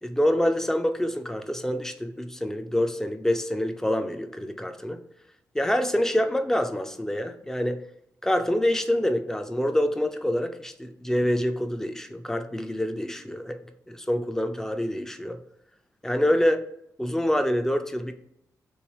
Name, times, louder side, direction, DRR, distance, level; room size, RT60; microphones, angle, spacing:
voice 1, 0.0-5.0 5.5-7.8 8.2-13.6 13.9-15.4 16.0-16.6 17.0-18.1, left 1 dB, 5° left, 8 dB, 0.4 m, -26 dB
3.4 x 3.1 x 3.0 m, 0.76 s
cardioid pair, 95°, 7 cm